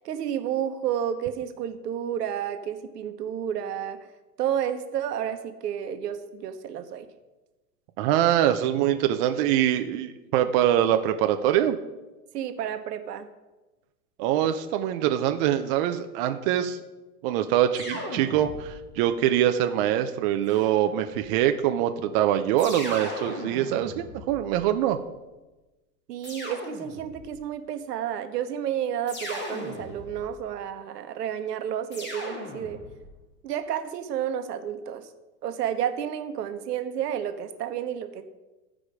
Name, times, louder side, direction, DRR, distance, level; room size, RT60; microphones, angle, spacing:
voice 1, 0.0-4.0 4.4-7.1 12.3-13.3 26.1-32.8 33.4-35.1 35.4-38.2, right 9 dB, 75° right, 8 dB, 1.1 m, -31 dB
voice 2, 8.0-11.8 14.2-16.8 17.2-25.0, right 11 dB, 35° right, 7 dB, 0.5 m, -24 dB
sound 1, 17.7-18.9 20.5-21.3 22.6-24.9 26.2-27.3 29.1-30.4 31.9-33.1, left 1 dB, 20° left, 1.9 m, -38 dB
13.5 x 5.0 x 4.9 m, 1.1 s
hypercardioid pair, 125°, 49 cm